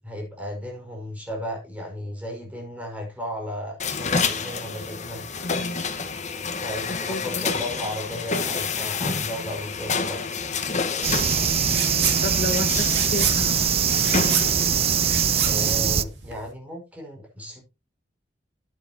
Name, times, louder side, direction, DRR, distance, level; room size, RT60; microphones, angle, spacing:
voice 1, 0.0-5.2 6.6-10.4 15.4-17.6, equal, 10° right, 0 dB, 5.5 m, -35 dB
sound 1, 3.8-15.8, left 4 dB, 40° left, 1.4 m, -29 dB
voice 2, 5.4-5.8 6.9-7.5 12.2-13.8, left 1 dB, 60° left, 5 dB, 1.7 m, -31 dB
sound 2, 11.0-16.0, right 8 dB, 35° right, 0.5 m, -22 dB
sound 3, 11.7-12.2 12.5-16.5, right 7 dB, 65° right, 2.8 m, -29 dB
12.0 x 9.7 x 2.9 m, 0.27 s
head